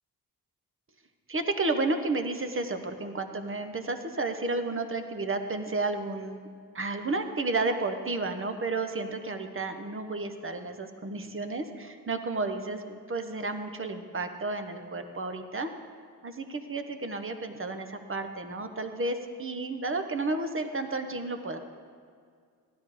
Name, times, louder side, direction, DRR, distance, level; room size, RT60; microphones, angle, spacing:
voice 1, 1.3-6.5 6.7-15.7 16.2-21.6, right 3 dB, 35° right, 7 dB, 1.1 m, -32 dB
15.5 x 11.5 x 5.0 m, 2.1 s
wide cardioid pair, 100°, 37 cm